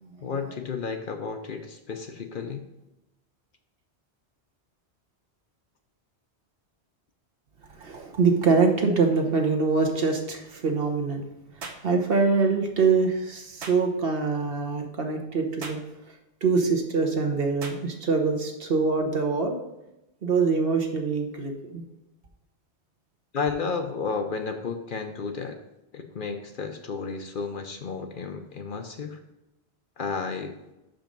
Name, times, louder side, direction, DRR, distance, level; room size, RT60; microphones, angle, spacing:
voice 1, 0.2-2.7 23.3-25.6 25.9-29.2 30.0-30.5, left 5 dB, 55° left, 5 dB, 0.7 m, -32 dB
voice 2, 7.8-11.2 11.8-15.8 16.4-19.5 20.2-21.8, right 4 dB, 60° right, 3 dB, 1.2 m, -24 dB
sound 1, 11.6-11.9 13.6-13.8 15.6-15.9 17.6-17.8, right 4 dB, 75° right, 1.2 m, -38 dB
6.2 x 5.2 x 5.2 m, 0.92 s
omnidirectional pair, 1.1 m